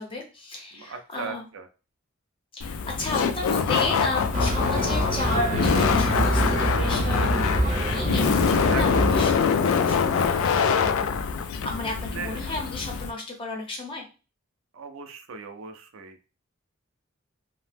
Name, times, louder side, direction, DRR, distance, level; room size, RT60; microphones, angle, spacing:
voice 1, 0.0-1.5 2.5-10.4 11.6-14.0, left 3 dB, 25° left, 0 dB, 0.7 m, -33 dB
voice 2, 0.7-1.7 8.7-9.2 12.1-12.5 14.7-16.2, right 5 dB, 75° right, 7 dB, 0.4 m, -37 dB
Laughter, 2.6-13.1, left 6 dB, 80° left, 0.3 m, -24 dB
sound 1, 4.3-9.3, right 1 dB, 40° right, 0.6 m, -26 dB
2.8 x 2.0 x 3.3 m, 0.33 s
head